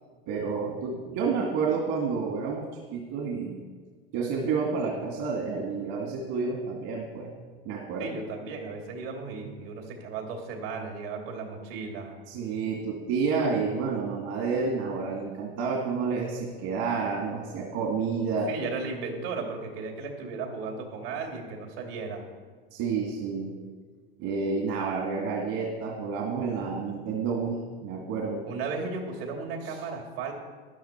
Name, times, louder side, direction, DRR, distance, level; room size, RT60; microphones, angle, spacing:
voice 1, 0.3-2.7 2.9-3.6 4.1-7.3 7.7-8.2 12.3-18.5 22.7-23.6 24.2-28.5 29.6-29.8, right 5 dB, 65° right, -1 dB, 2.2 m, -30 dB
voice 2, 8.0-12.2 18.5-22.2 28.4-30.3, right 4 dB, 80° right, 2 dB, 2.9 m, -35 dB
12.5 x 10.5 x 4.5 m, 1.5 s
supercardioid pair, 125°, 29 cm